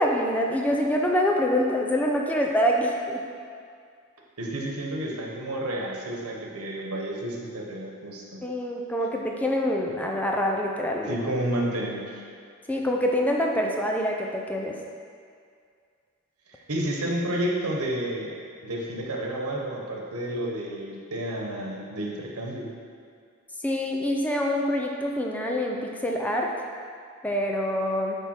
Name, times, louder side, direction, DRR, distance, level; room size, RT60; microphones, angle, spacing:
voice 1, 0.0-3.2 8.4-11.2 12.7-14.7 23.6-26.5 27.2-28.2, equal, 5° left, 0 dB, 0.4 m, -25 dB
voice 2, 4.4-8.4 11.0-12.2 16.5-18.3 18.6-22.7, right 1 dB, 90° right, -2 dB, 1.1 m, -31 dB
8.5 x 3.5 x 4.4 m, 2.2 s
head